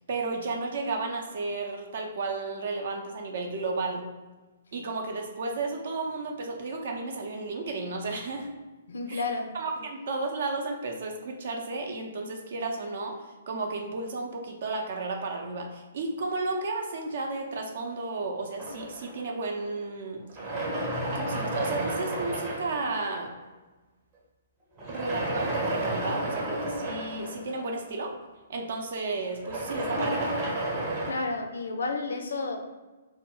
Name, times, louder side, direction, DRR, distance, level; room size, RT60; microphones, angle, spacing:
voice 1, 0.1-4.1 4.7-8.5 9.1-9.2 9.5-13.2 13.5-20.2 21.1-23.3 24.9-28.1 28.5-30.3, right 3 dB, 50° right, 2 dB, 0.5 m, -33 dB
voice 2, 8.9-9.5 31.0-32.6, left 3 dB, 60° left, 5 dB, 0.4 m, -31 dB
sound 1, 18.6-19.8 20.3-23.4 24.8-28.2 29.3-31.1, right 1 dB, 25° right, 0.8 m, -32 dB
2.1 x 2.1 x 3.7 m, 1.2 s
figure-of-eight pair, 120°, 0 cm